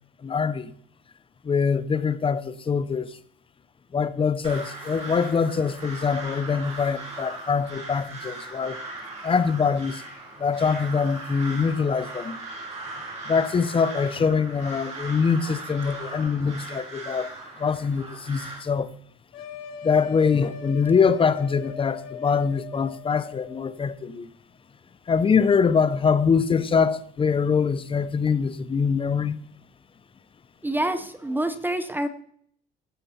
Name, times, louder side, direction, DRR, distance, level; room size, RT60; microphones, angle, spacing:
voice 1, 0.2-0.7 1.4-3.1 3.9-8.8 9.2-10.0 10.4-12.4 13.3-17.3 17.6-18.9 19.8-24.3 25.1-29.4, left 5 dB, 25° left, 0.7 m, -23 dB
Crow, 4.4-18.6, right 2 dB, 30° right, 5.4 m, -39 dB
sound 1, 19.3-23.7, left 7 dB, 75° left, 3.0 m, -40 dB
voice 2, 30.6-32.1, right 1 dB, 10° right, 0.8 m, -27 dB
16.0 x 6.8 x 4.3 m
cardioid pair, 105°, 21 cm